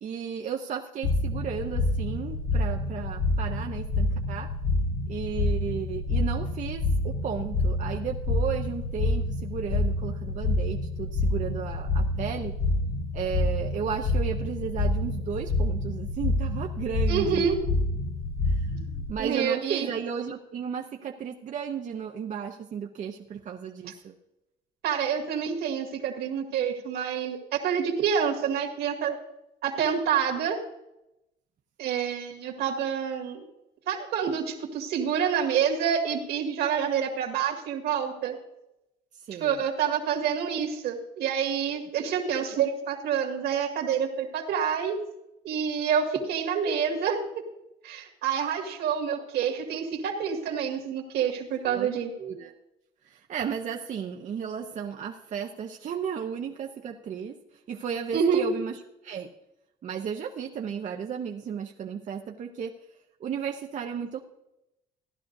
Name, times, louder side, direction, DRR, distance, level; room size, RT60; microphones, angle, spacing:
voice 1, 0.0-4.5 5.1-12.5 13.1-17.5 18.5-18.6 19.1-24.1 39.2-39.6 51.7-51.9 52.2-52.5 53.1-57.3 57.7-58.8 59.0-59.3 59.8-62.7 63.2-64.2, right 7 dB, 45° right, 2 dB, 0.7 m, -34 dB
sound 1, 1.0-19.1, left 2 dB, 90° left, 5.0 m, -28 dB
voice 2, 17.1-17.6 18.7-18.9 19.2-19.9 24.8-29.2 29.6-30.6 31.8-33.4 33.9-38.4 39.4-45.0 45.4-47.2 47.8-52.1 58.1-58.5, right 7 dB, 75° right, 1 dB, 2.1 m, -27 dB
16.0 x 11.0 x 2.6 m, 0.90 s
cardioid pair, 110°, 17 cm